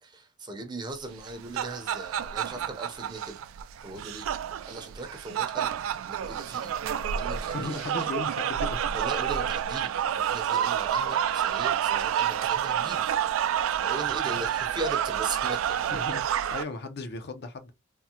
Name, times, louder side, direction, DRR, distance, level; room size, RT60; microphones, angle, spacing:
voice 1, 0.0-3.4 3.8-4.3 4.7-5.7 6.1-6.8 7.2-7.8 8.9-13.0 13.7-15.7, right 2 dB, 20° right, 0.6 m, -38 dB
sound 1, 1.2-16.6, right 9 dB, 80° right, 0.3 m, -29 dB
voice 2, 7.5-9.0 15.9-17.7, left 3 dB, 55° left, 0.5 m, -36 dB
3.5 x 2.0 x 2.8 m
head